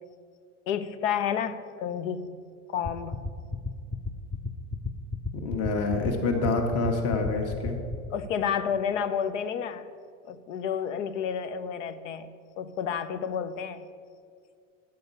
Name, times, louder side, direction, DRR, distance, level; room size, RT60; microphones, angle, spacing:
voice 1, 0.7-2.3 2.7-3.2 8.1-9.9 10.2-12.3 12.6-13.8, left 8 dB, 80° left, 12 dB, 0.8 m, -30 dB
sound 1, 2.8-8.0, left 3 dB, 10° left, 0.4 m, -31 dB
voice 2, 5.4-7.8, left 3 dB, 40° left, 3 dB, 1.2 m, -27 dB
9.1 x 6.8 x 5.4 m, 2.2 s
supercardioid pair, 110°, 37 cm